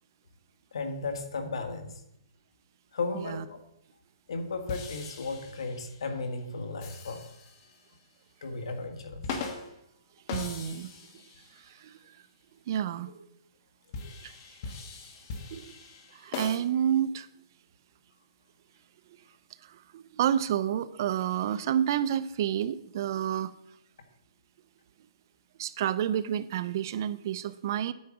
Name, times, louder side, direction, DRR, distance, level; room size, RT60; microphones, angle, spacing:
voice 1, 0.7-2.0 2.9-3.6 4.3-7.3 8.4-9.3 13.1-13.2, left 3 dB, 75° left, 6 dB, 1.7 m, -35 dB
sound 1, 4.7-6.1 6.8-7.9 9.1-9.8 10.3-11.7 13.9-16.6, left 4 dB, 35° left, 1.3 m, -40 dB
voice 2, 10.3-10.9 11.7-12.0 12.7-13.1 14.2-14.3 15.5-15.7 16.1-17.3 19.7-23.5 25.6-27.9, right 10 dB, 40° right, 15 dB, 0.5 m, -29 dB
9.3 x 4.8 x 7.3 m, 0.79 s
hypercardioid pair, 160°, 3 cm